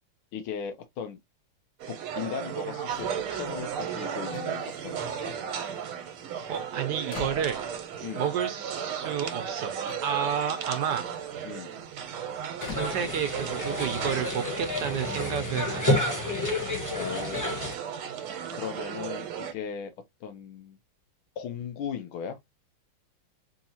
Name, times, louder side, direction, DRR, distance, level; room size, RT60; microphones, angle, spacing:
voice 1, 0.3-1.2 1.9-5.3 8.0-8.3 11.4-11.8 16.9-17.6 18.5-19.9 20.2-20.8 21.4-22.4, left 7 dB, 80° left, 1.6 m, -37 dB
sound 1, 1.8-19.5, right 8 dB, 85° right, 1.7 m, -35 dB
sound 2, 2.9-3.9 4.2-6.2 6.5-8.1 9.0-9.1 9.3-13.8 14.1-14.6, left 5 dB, 55° left, 1.4 m, -47 dB
voice 2, 6.5-7.6 8.2-9.7 10.0-11.0 12.7-16.3, right 8 dB, 70° right, 1.1 m, -31 dB
sound 3, 12.6-17.7, left 2 dB, 20° left, 0.4 m, -30 dB
4.3 x 2.8 x 2.8 m
omnidirectional pair, 2.3 m